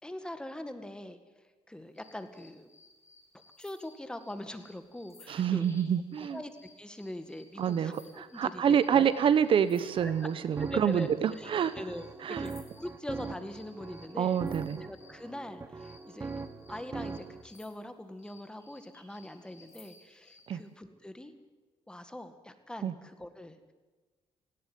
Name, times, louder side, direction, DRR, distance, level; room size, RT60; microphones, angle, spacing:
voice 1, 0.0-1.2 1.7-2.7 3.6-5.6 6.2-9.1 10.0-10.1 10.6-11.1 11.4-14.4 14.8-21.3 21.9-23.7, left 1 dB, 10° left, 9 dB, 1.8 m, -43 dB
sound 1, 1.9-15.2 15.8-20.5, left 3 dB, 25° left, 5.3 m, -59 dB
voice 2, 5.3-6.4 7.6-11.7 12.2-12.5 14.2-14.8 20.5-20.6 22.8-22.9, right 8 dB, 55° right, 14 dB, 1.0 m, -27 dB
sound 2, 9.7-17.4, right 4 dB, 25° right, 1.2 m, -42 dB
18.0 x 17.0 x 9.5 m, 1.3 s
cardioid pair, 115°, 11 cm